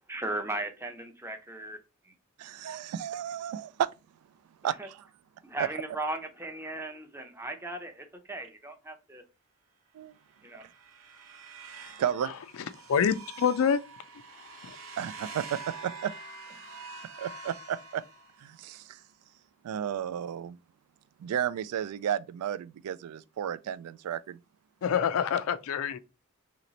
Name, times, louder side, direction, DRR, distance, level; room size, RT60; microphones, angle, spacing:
voice 1, 0.1-1.8 2.1-2.2 4.8-4.9 5.4-9.2 10.4-10.7, right 2 dB, 10° right, 0.6 m, -37 dB
voice 2, 2.4-3.9 4.6-5.0 5.6-5.7 10.0-10.1 12.0-12.3 15.0-16.1 17.2-18.0 18.4-18.8 19.6-20.6 21.2-24.4, right 9 dB, 90° right, 0.3 m, -32 dB
sound 1, 10.3-18.6, right 4 dB, 65° right, 0.7 m, -46 dB
voice 3, 12.9-13.8 14.6-14.8 24.8-26.0, left 7 dB, 65° left, 0.4 m, -26 dB
3.1 x 2.9 x 3.9 m
head